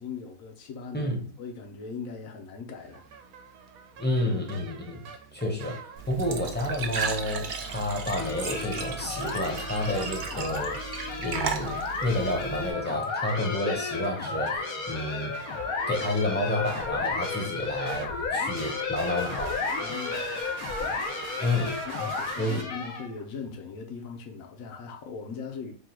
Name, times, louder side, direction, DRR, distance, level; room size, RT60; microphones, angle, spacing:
voice 1, 0.0-3.0 19.8-20.4 21.8-25.7, left 5 dB, 70° left, 1.2 m, -40 dB
sound 1, 2.8-22.6, right 6 dB, 85° right, 1.0 m, -45 dB
voice 2, 4.0-5.0 5.3-10.8 11.2-15.4 15.9-19.6 21.4-21.8 22.4-22.6, left 1 dB, 10° left, 0.6 m, -30 dB
Glass / Trickle dribble / Fill (with liquid), 6.0-12.7, right 6 dB, 65° right, 0.4 m, -35 dB
sound 2, 8.1-23.2, left 4 dB, 90° left, 1.3 m, -33 dB
3.7 x 2.3 x 4.4 m
omnidirectional pair, 1.5 m